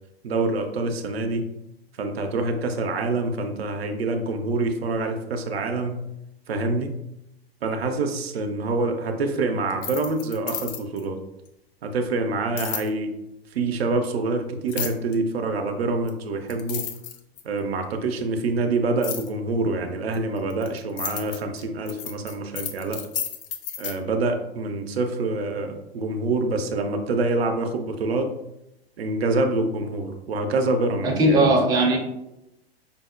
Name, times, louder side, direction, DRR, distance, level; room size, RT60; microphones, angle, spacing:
voice 1, 0.2-1.5 2.0-6.0 6.5-6.9 7.6-11.2 11.8-13.1 13.5-16.9 17.4-23.1 23.8-28.3 29.0-31.5, right 3 dB, 70° right, 5 dB, 0.5 m, -26 dB
sound 1, 9.7-11.0 12.6-12.9 14.7-15.1 16.1-16.2 16.5-17.6 19.0-19.3 20.1-23.9, left 8 dB, 45° left, 0.5 m, -32 dB
voice 2, 31.0-32.0, right 1 dB, 15° right, 0 dB, 0.5 m, -18 dB
5.1 x 2.0 x 2.4 m, 0.86 s
figure-of-eight pair, 95°, 32 cm